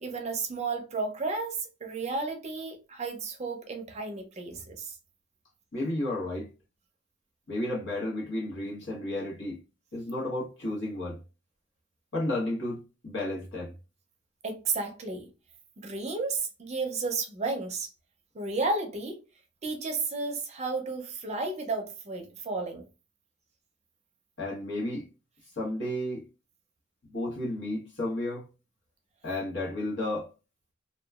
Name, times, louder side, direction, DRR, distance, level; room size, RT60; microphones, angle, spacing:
voice 1, 0.0-4.9 14.4-15.3 15.8-17.9 18.3-19.2 19.6-22.8, right 3 dB, 35° right, 0.5 m, -32 dB
voice 2, 5.7-6.5 7.5-9.6 9.9-11.2 12.1-13.7 24.4-25.1 25.6-26.2 27.0-28.5 29.2-30.3, left 1 dB, 65° left, 1.1 m, -32 dB
2.9 x 2.2 x 2.3 m
head